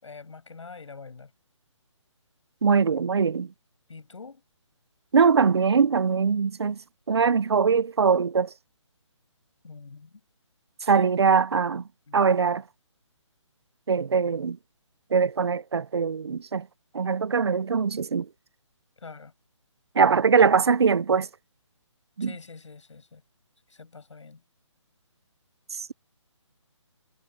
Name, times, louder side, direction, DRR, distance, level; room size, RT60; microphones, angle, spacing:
voice 1, 0.0-1.3 3.9-4.4 9.6-10.2 10.9-11.1 12.1-12.2 19.0-19.3 22.2-23.2 23.7-24.4, left 4 dB, 70° left, 7.1 m, -45 dB
voice 2, 2.6-3.5 5.1-6.8 7.1-8.5 10.9-11.8 12.1-12.6 13.9-14.6 15.1-16.7 16.9-18.3 19.9-21.3 22.2-22.3, right 5 dB, 55° right, 0.7 m, -22 dB
hypercardioid pair, 175°, 16 cm